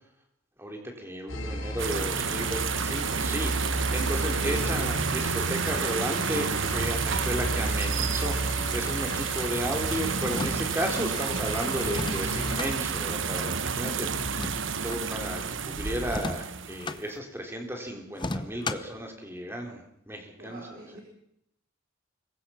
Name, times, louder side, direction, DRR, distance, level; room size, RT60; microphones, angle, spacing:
voice 1, 0.6-14.5 14.8-20.6, equal, 10° right, 2 dB, 3.7 m, -34 dB
sound 1, 1.3-12.6, equal, 70° left, 4.2 m, -34 dB
voice 2, 1.4-3.0 4.3-4.6 13.9-14.6 20.4-21.0, equal, 45° right, -2 dB, 4.7 m, -46 dB
sound 2, 1.8-17.0, right 6 dB, 65° right, 1.2 m, -30 dB
sound 3, 10.2-11.0 11.9-12.7 14.2-15.0 16.1-17.0 18.1-19.0, left 2 dB, 20° left, 0.9 m, -35 dB
25.5 x 22.5 x 5.8 m, 0.78 s
head